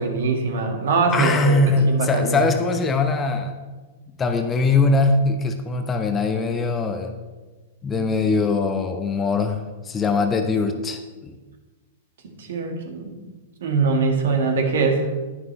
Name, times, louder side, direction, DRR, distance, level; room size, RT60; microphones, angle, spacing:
voice 1, 0.0-2.4 12.2-13.2 13.6-15.1, right 4 dB, 55° right, 3 dB, 1.9 m, -23 dB
voice 2, 1.1-3.5 4.2-7.1 7.8-11.4, left 3 dB, 20° left, 6 dB, 0.8 m, -21 dB
11.0 x 10.5 x 3.3 m, 1.3 s
figure-of-eight pair, 100°, 0 cm